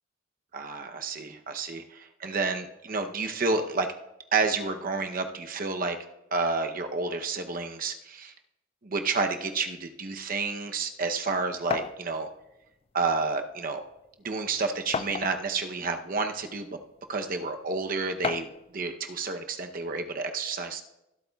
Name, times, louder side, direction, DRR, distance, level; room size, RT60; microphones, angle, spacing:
voice 1, 0.5-1.8 2.2-3.9 4.3-6.0 6.3-8.3 8.8-12.3 12.9-13.8 14.2-16.7 17.1-18.5 18.7-20.8, right 4 dB, 45° right, 5 dB, 0.8 m, -30 dB
sound 1, 11.7-12.0 13.1-13.2 13.6-13.7 14.9-15.6 16.4-16.5 18.2-18.6, left 5 dB, 30° left, 0.3 m, -32 dB
23.5 x 8.4 x 2.4 m, 0.89 s
head